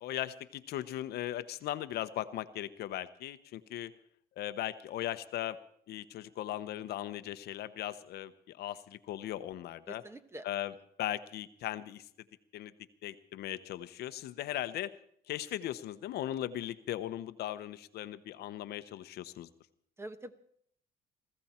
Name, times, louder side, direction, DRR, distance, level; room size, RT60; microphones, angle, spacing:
voice 1, 0.0-3.9 4.4-5.6 5.9-10.0 10.4-10.7 11.0-12.0 12.5-12.7 13.0-14.9 15.3-19.5, left 13 dB, 70° left, 12 dB, 0.9 m, -38 dB
voice 2, 9.9-10.4 20.0-20.3, right 1 dB, 15° right, 10 dB, 1.2 m, -45 dB
21.0 x 14.5 x 4.4 m, 0.65 s
cardioid pair, 110°, 17 cm